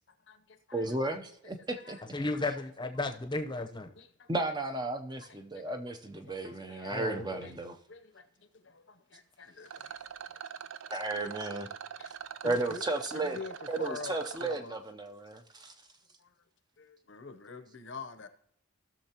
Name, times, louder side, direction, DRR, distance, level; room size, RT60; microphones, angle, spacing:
voice 1, 0.1-1.2 1.6-2.0 2.4-2.5 4.0-4.3 5.2-5.7 6.3-7.0 7.4-7.5 7.9-11.2 12.0-12.8 13.1-14.1 14.4-14.8 16.2-16.3 16.8-18.3, left 4 dB, 60° left, 0.8 m, -47 dB
voice 2, 0.7-2.1 4.3-7.8 10.9-11.7 12.4-13.4 13.7-15.7, right 2 dB, 20° right, 0.6 m, -34 dB
voice 3, 2.1-3.9 6.9-7.5, left 2 dB, 20° left, 0.8 m, -34 dB
Rattle, 9.6-14.6, right 8 dB, 70° right, 0.4 m, -44 dB
16.5 x 6.5 x 2.9 m
head